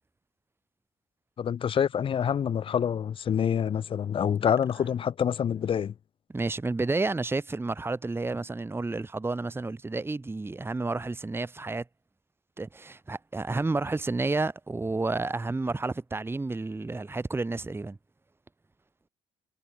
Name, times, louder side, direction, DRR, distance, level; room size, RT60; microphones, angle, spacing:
voice 1, 1.4-5.9, left 8 dB, 35° left, 0.4 m, -26 dB
voice 2, 6.3-11.8 12.6-18.0, right 3 dB, 15° right, 1.2 m, -30 dB
supercardioid pair, 75°, 15 cm